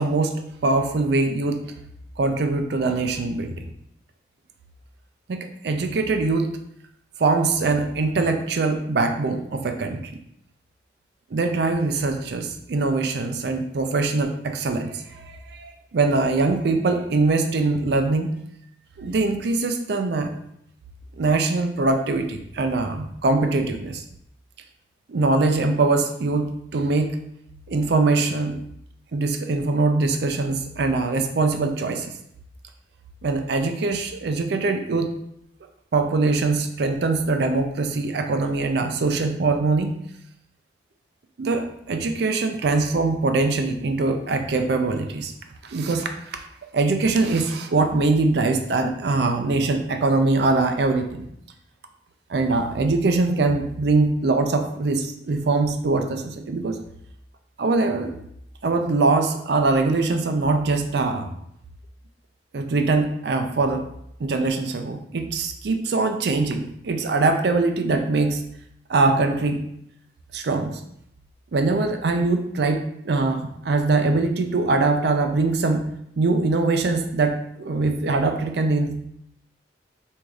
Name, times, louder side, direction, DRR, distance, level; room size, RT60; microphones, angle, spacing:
voice 1, 0.0-1.6 2.2-3.7 5.3-6.5 7.2-10.1 11.3-18.4 19.0-20.3 21.2-24.0 25.1-27.2 27.7-28.6 29.1-32.2 33.2-35.1 35.9-39.9 41.4-45.3 45.6-46.5 46.7-51.3 52.3-56.8 57.6-58.1 58.6-61.3 62.5-63.9 64.2-68.4 68.9-69.6 70.3-70.8 71.5-75.9 76.2-79.1, right 3 dB, 60° right, 5 dB, 0.4 m, -22 dB
4.7 x 2.7 x 2.4 m, 0.74 s
head